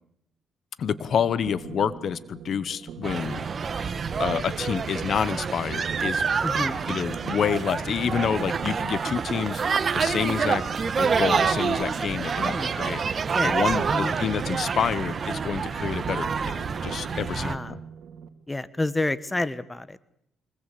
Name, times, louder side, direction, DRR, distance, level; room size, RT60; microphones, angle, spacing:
voice 1, 0.8-3.4 4.2-6.3 6.9-9.6 9.9-10.6 11.0-13.0 13.4-17.8, left 7 dB, 55° left, 17 dB, 1.0 m, -28 dB
sound 1, 0.8-18.3, right 8 dB, 70° right, 2.6 m, -43 dB
sound 2, 3.0-17.6, right 5 dB, 45° right, 1.5 m, -27 dB
voice 2, 6.4-6.8 12.4-12.7 13.3-13.6 13.9-14.2 17.3-17.8 18.5-20.0, left 2 dB, 15° left, 16 dB, 1.2 m, -29 dB
24.5 x 19.5 x 8.4 m, 0.72 s
cardioid pair, 90°, 0 cm